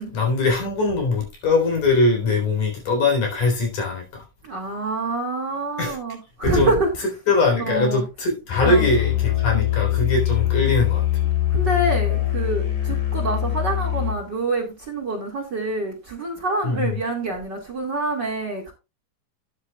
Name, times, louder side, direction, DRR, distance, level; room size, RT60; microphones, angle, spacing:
voice 1, 0.1-4.2 5.8-6.0 6.4-6.7 7.3-11.0 16.6-17.0, left 3 dB, 65° left, 5.4 m, -21 dB
voice 2, 4.4-6.9 7.6-8.0 8.6-8.9 11.5-18.7, right 2 dB, 35° right, 2.3 m, -26 dB
Musical instrument, 8.5-14.2, left 13 dB, 85° left, 5.2 m, -23 dB
12.5 x 9.7 x 2.3 m
omnidirectional pair, 4.0 m